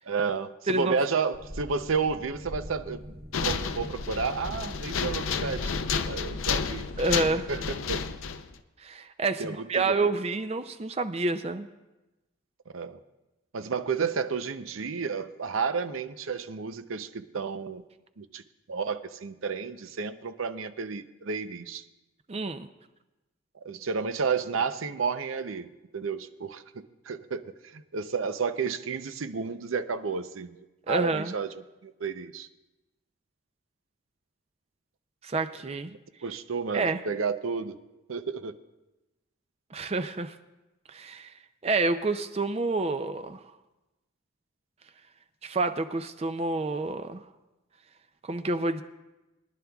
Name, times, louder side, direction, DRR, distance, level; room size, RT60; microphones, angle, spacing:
voice 1, 0.0-3.0 3.4-5.7 6.1-6.8 7.5-7.6 7.9-8.0 9.4-10.1 12.7-13.0 13.5-17.8 18.2-18.4 18.7-21.8 23.6-31.5 31.8-32.5 36.2-37.8 38.1-38.5, right 5 dB, 85° right, 11 dB, 0.6 m, -31 dB
sound 1, 1.3-6.4, equal, 65° right, 3.6 m, -42 dB
sound 2, 3.3-8.5, left 5 dB, 85° left, 0.6 m, -31 dB
voice 2, 7.0-7.5 8.8-11.7 22.3-22.7 30.9-31.3 35.2-35.9 36.7-37.0 39.7-40.4 40.9-41.3 41.6-43.4 45.4-47.2 48.2-48.8, right 3 dB, 30° right, 9 dB, 0.4 m, -28 dB
23.0 x 11.0 x 2.3 m, 1.0 s
head